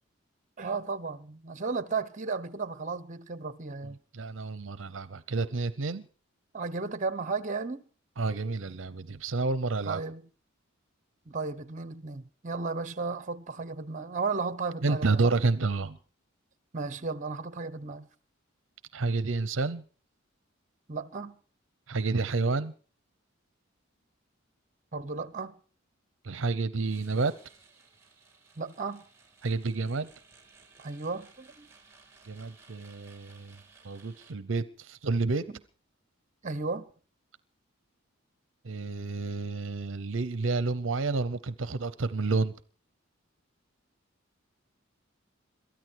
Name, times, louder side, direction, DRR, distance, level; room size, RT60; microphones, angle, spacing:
voice 1, 0.6-4.0 6.5-7.8 9.9-10.2 11.3-15.3 16.7-18.1 20.9-21.4 24.9-25.6 28.6-29.0 30.8-31.7 35.5-35.6 36.4-36.9, right 4 dB, 40° right, 1.1 m, -34 dB
voice 2, 4.1-6.0 8.2-10.0 14.8-16.0 18.9-19.8 21.9-22.7 26.2-27.3 29.4-30.1 32.2-33.6 33.8-35.5 38.6-42.5, right 3 dB, 70° right, 0.7 m, -29 dB
sound 1, 26.8-34.3, right 4 dB, 15° right, 3.4 m, -58 dB
22.5 x 13.5 x 4.7 m
head